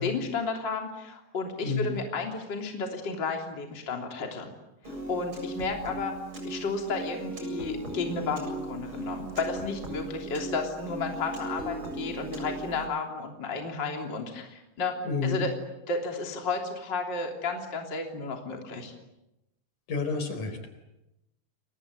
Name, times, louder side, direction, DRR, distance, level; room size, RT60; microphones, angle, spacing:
voice 1, 0.0-4.5 5.1-6.1 6.4-15.0 15.2-15.5 15.9-18.9, left 4 dB, 30° left, 2 dB, 3.7 m, -32 dB
voice 2, 1.6-2.0 15.0-15.5 19.9-20.6, left 4 dB, 60° left, 8 dB, 5.6 m, -29 dB
Piano, 4.8-12.9, right 2 dB, 35° right, 8.3 m, -38 dB
30.0 x 24.0 x 8.0 m, 0.90 s
omnidirectional pair, 4.0 m